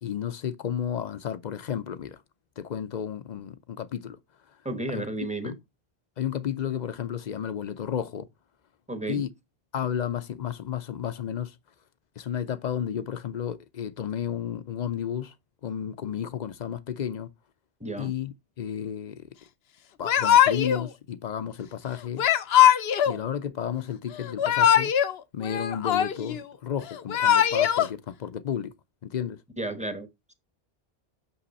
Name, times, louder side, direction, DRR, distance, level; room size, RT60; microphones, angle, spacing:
voice 1, 0.0-2.2 2.6-4.2 4.9-5.1 5.4-5.6 6.2-8.3 9.1-9.3 9.7-11.6 12.2-15.3 15.6-17.3 18.0-19.3 20.0-22.3 23.1-25.0 25.3-28.7 29.0-29.4, left 9 dB, 55° left, 0.6 m, -32 dB
voice 2, 4.6-5.5 8.9-9.2 17.8-18.1 29.6-30.1, right 2 dB, 5° right, 0.8 m, -32 dB
Yell / Crying sobbing, 20.0-20.8 22.2-23.2 24.2-25.1 25.4-26.4 26.9-27.9, left 10 dB, 80° left, 0.9 m, -21 dB
6.0 x 5.7 x 4.1 m
omnidirectional pair, 1.0 m